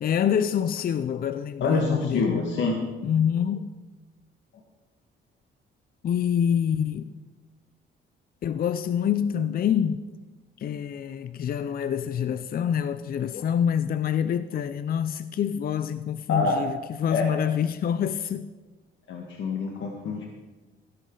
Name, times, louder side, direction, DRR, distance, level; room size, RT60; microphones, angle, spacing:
voice 1, 0.0-2.4 3.0-3.7 6.0-7.1 8.4-10.0 10.6-18.5, left 8 dB, 50° left, 0.5 m, -26 dB
voice 2, 1.6-2.8 16.3-16.6 17.1-17.3 19.1-20.2, left 3 dB, 70° left, 1.6 m, -26 dB
16.5 x 11.0 x 3.9 m
cardioid pair, 90°, 20 cm